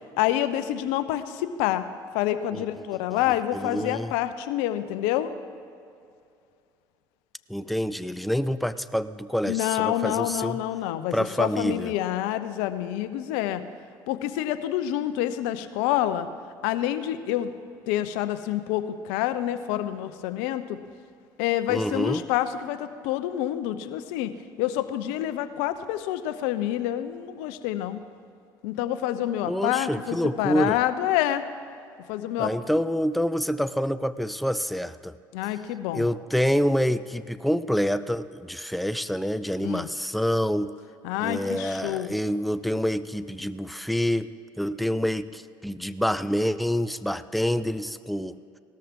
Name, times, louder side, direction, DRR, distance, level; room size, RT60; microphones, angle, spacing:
voice 1, 0.2-1.9 2.1-5.3 9.4-13.6 14.1-16.3 16.6-17.5 17.9-20.8 21.4-28.0 28.6-31.5 32.1-32.5 35.3-36.1 39.6-39.9 41.0-42.1, left 12 dB, 75° left, 12 dB, 0.7 m, -27 dB
voice 2, 3.5-4.1 7.5-10.6 11.1-11.9 21.7-22.2 29.5-30.8 32.4-35.1 35.9-40.7 41.2-44.3 44.6-48.4, equal, ahead, 14 dB, 0.5 m, -27 dB
18.0 x 13.0 x 3.7 m, 2.4 s
hypercardioid pair, 70°, 11 cm